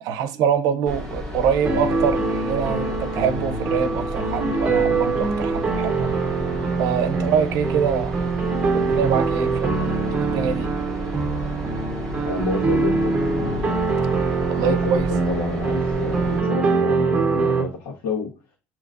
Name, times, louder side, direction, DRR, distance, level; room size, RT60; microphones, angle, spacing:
voice 1, 0.0-6.1 6.8-8.2 8.7-10.7 14.4-15.1, right 7 dB, 70° right, 0.7 m, -24 dB
sound 1, 0.9-16.4, left 1 dB, 5° left, 1.6 m, -33 dB
sound 2, 1.6-17.6, right 4 dB, 20° right, 0.9 m, -23 dB
voice 2, 12.3-13.1 14.6-18.3, left 4 dB, 85° left, 1.3 m, -29 dB
6.7 x 2.9 x 2.5 m
cardioid pair, 140°, 6 cm